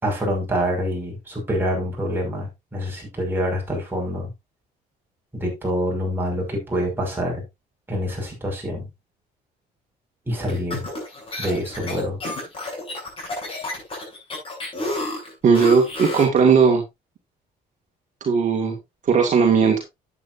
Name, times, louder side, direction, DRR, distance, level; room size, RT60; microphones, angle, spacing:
voice 1, 0.0-4.3 5.3-7.4 7.9-8.9 10.3-10.8 11.4-12.2, equal, 10° right, 6.0 m, -26 dB
sound 1, 10.5-16.4, left 2 dB, 30° left, 7.1 m, -30 dB
voice 2, 15.4-16.8 18.2-18.8 19.1-19.8, right 5 dB, 45° right, 2.1 m, -17 dB
11.0 x 8.8 x 2.7 m
cardioid pair, 110°, 17 cm